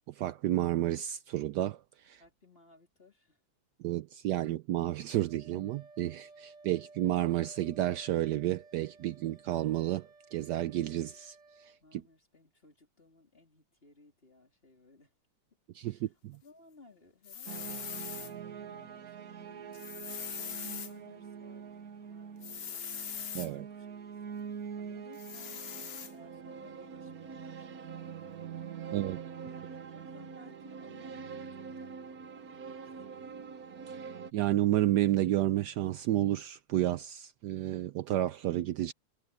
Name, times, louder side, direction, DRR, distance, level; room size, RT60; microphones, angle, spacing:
voice 1, 0.2-1.8 2.0-2.2 3.8-11.4 15.7-16.4 23.3-23.6 28.9-29.2 33.9-38.9, right 14 dB, 90° right, 0.9 m, -31 dB
voice 2, 2.2-3.4 11.8-15.1 15.9-16.1 16.4-22.6 23.4-23.9 24.3-28.2 29.3-32.9, left 4 dB, 25° left, 3.7 m, -60 dB
Wind instrument woodwind instrument, 5.3-11.8, right 3 dB, 35° right, 4.3 m, -56 dB
sound 1, 17.2-18.3 19.7-20.9 22.4-23.5 25.1-26.1, left 7 dB, 70° left, 0.5 m, -41 dB
sound 2, 17.5-34.3, right 6 dB, 50° right, 1.3 m, -44 dB
omnidirectional pair, 2.4 m